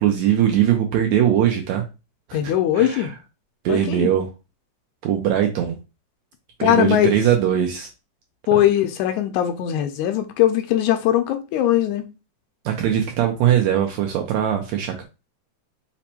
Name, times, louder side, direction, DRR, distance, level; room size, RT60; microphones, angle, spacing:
voice 1, 0.0-1.9 2.3-3.1 3.7-4.3 5.0-5.8 6.6-7.9 12.7-15.0, right 10 dB, 75° right, 1.7 m, -20 dB
voice 2, 2.3-3.1 3.7-4.1 6.6-7.1 8.5-12.0, left 12 dB, 80° left, 1.8 m, -20 dB
5.1 x 2.1 x 4.2 m
omnidirectional pair, 3.5 m